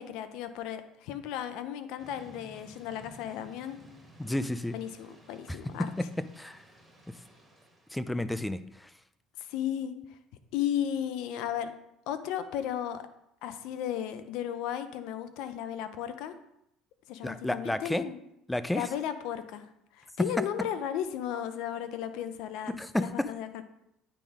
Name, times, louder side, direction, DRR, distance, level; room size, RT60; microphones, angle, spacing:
voice 1, 0.0-3.8 4.7-5.9 9.4-9.9 10.5-11.7 12.1-13.1 13.4-16.3 17.1-18.2 18.7-19.6 19.9-23.6, left 10 dB, 75° left, 10 dB, 0.7 m, -35 dB
Thunder / Rain, 2.0-7.9, right 1 dB, 10° right, 1.9 m, -55 dB
voice 2, 4.2-4.7 6.0-6.1 6.4-6.6 7.9-8.9 17.2-18.0 18.5-18.9 22.8-23.3, left 1 dB, 5° left, 13 dB, 0.5 m, -31 dB
9.1 x 3.7 x 4.8 m, 0.79 s
supercardioid pair, 95°, 0 cm